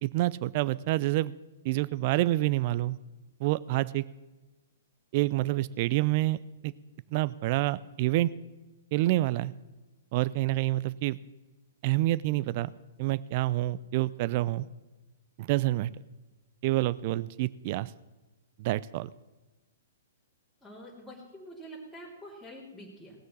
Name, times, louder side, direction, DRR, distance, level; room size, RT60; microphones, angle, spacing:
voice 1, 0.0-1.3 1.6-3.0 3.4-4.0 5.1-6.4 6.6-6.7 7.1-8.3 8.9-9.5 10.1-11.2 11.8-12.7 13.0-14.7 15.4-15.9 16.6-17.9 18.6-19.1, right 17 dB, 45° right, 18 dB, 0.4 m, -27 dB
voice 2, 20.6-23.1, equal, ahead, -9 dB, 3.3 m, -46 dB
18.5 x 6.4 x 7.2 m, 1.1 s
hypercardioid pair, 120°, 0 cm